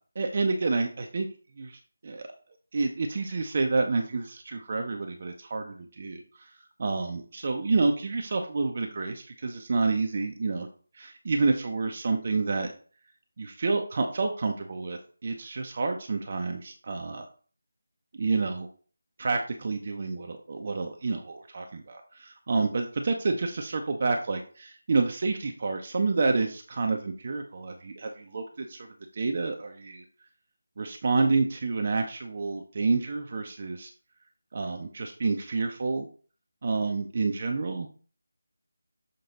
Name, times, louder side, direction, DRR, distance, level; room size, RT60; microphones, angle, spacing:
voice 1, 0.2-1.3 1.6-2.3 2.7-6.5 6.8-10.7 10.9-12.7 13.4-17.3 18.2-18.7 19.2-28.9 29.1-30.0 30.8-33.9 34.5-36.1 36.6-37.9, right 3 dB, 40° right, 4 dB, 0.6 m, -29 dB
6.8 x 3.8 x 3.9 m, 0.41 s
figure-of-eight pair, 160°, 0 cm